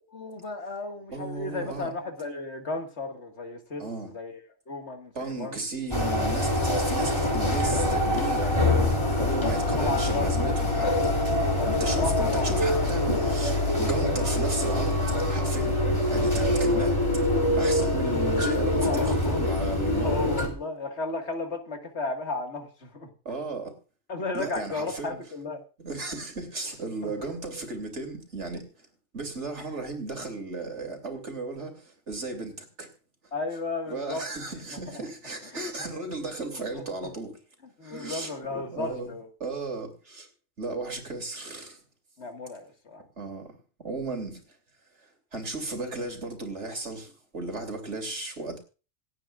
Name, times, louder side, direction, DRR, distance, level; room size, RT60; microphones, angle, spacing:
voice 1, 0.1-4.4 4.7-5.7 9.0-9.5 9.8-11.1 11.4-11.7 11.9-12.5 18.8-19.4 20.0-23.1 24.1-25.6 27.0-27.1 33.3-34.2 35.5-35.6 36.8-37.1 37.8-39.3 42.2-43.0, left 3 dB, 60° left, 2.1 m, -34 dB
voice 2, 1.1-1.9 3.8-4.1 5.1-8.6 9.2-11.1 11.7-15.8 16.1-17.0 17.6-20.2 23.2-23.8 24.3-25.2 25.8-28.7 29.1-32.9 33.9-37.4 37.8-39.1 39.4-40.3 40.6-41.8 43.2-44.4 45.3-48.6, right 3 dB, 65° right, 3.1 m, -35 dB
sound 1, 5.9-20.5, left 1 dB, 20° left, 3.1 m, -25 dB
26.5 x 8.9 x 2.4 m
omnidirectional pair, 1.3 m